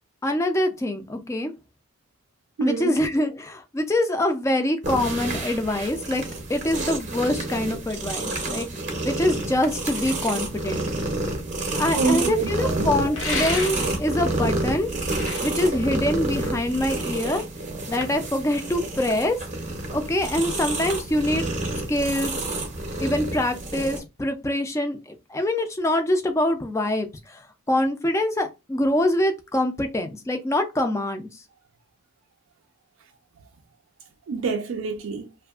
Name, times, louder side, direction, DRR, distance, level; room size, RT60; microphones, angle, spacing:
voice 1, 0.2-1.5 2.6-8.7 9.1-10.9 11.8-14.9 15.4-17.4 17.9-19.4 19.9-21.4 21.9-22.5 23.0-27.4 27.7-31.3, left 1 dB, 15° left, 0.3 m, -24 dB
voice 2, 2.6-3.0 11.9-12.9 34.3-35.3, right 4 dB, 75° right, 0.3 m, -26 dB
sound 1, 4.8-24.0, right 2 dB, 35° right, 0.6 m, -29 dB
sound 2, 13.1-14.1 14.9-16.6, left 4 dB, 75° left, 0.7 m, -32 dB
2.7 x 2.4 x 2.3 m
head